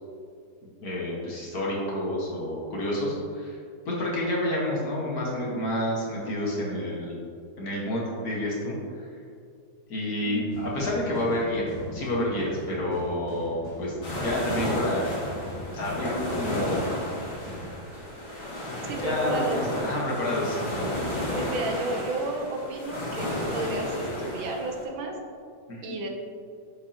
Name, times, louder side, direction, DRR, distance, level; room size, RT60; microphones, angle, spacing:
voice 1, 0.8-3.6 3.9-7.2 7.6-9.1 9.9-13.9 14.2-15.2 15.7-16.9 19.0-21.1 25.7-25.8, left 1 dB, 50° left, -4 dB, 1.8 m, -29 dB
sound 1, 10.5-17.7, left 1 dB, 35° right, 1.3 m, -42 dB
sound 2, 14.0-24.8, left 1 dB, 75° left, 2.7 m, -32 dB
voice 2, 18.8-19.6 21.3-25.1 25.8-26.1, right 2 dB, 80° right, 2 dB, 1.6 m, -32 dB
7.5 x 7.1 x 2.9 m, 2.3 s
omnidirectional pair, 2.2 m